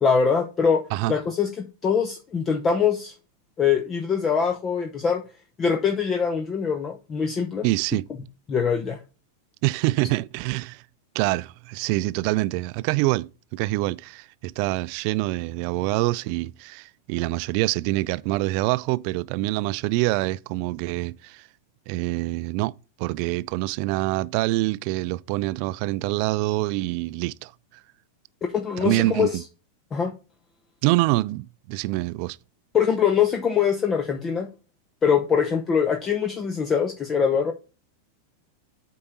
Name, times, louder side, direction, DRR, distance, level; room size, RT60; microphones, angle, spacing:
voice 1, 0.0-0.8 1.1-3.1 3.6-5.2 5.6-7.6 8.5-9.0 28.4-29.3 29.9-30.1 32.7-34.5 35.0-37.5, left 6 dB, 25° left, 0.8 m, -23 dB
voice 2, 7.6-8.1 9.6-10.8 11.1-21.5 21.9-22.7 23.0-27.5 28.8-29.4 30.8-32.4, right 19 dB, 45° right, 0.4 m, -25 dB
8.6 x 4.7 x 4.0 m
figure-of-eight pair, 90°, 0 cm